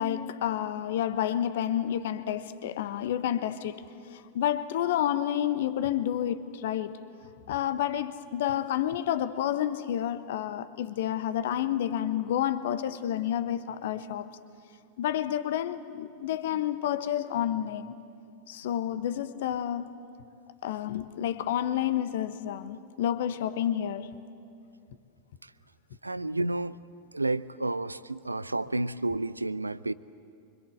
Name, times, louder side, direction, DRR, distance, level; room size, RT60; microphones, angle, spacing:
voice 1, 0.0-3.8 4.1-7.0 7.5-14.3 15.0-17.9 18.5-19.9 20.6-24.1, left 11 dB, 55° left, 1.1 m, -30 dB
voice 2, 26.0-26.8 27.1-29.9, right 2 dB, 80° right, 0.5 m, -31 dB
25.0 x 25.0 x 8.0 m
figure-of-eight pair, 90°, 0 cm